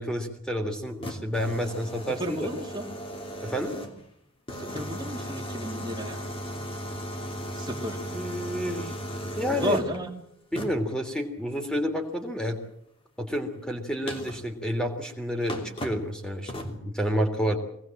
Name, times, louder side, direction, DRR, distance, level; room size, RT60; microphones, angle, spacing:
voice 1, 0.0-2.5 3.4-3.7 8.1-8.9 9.4-9.8 10.5-12.6 13.2-17.6, equal, 5° left, 3 dB, 3.1 m, -29 dB
lose electrical connection, 0.8-4.1 4.5-10.0 10.5-10.9 13.3-13.4 14.1-14.5 15.1-15.2 15.5-16.1 16.5-16.8, equal, 25° left, 2.9 m, -36 dB
voice 2, 2.2-2.9 4.6-6.2 7.6-8.0 9.5-10.1, equal, 20° right, 0 dB, 2.8 m, -32 dB
23.5 x 19.5 x 7.7 m, 0.75 s
head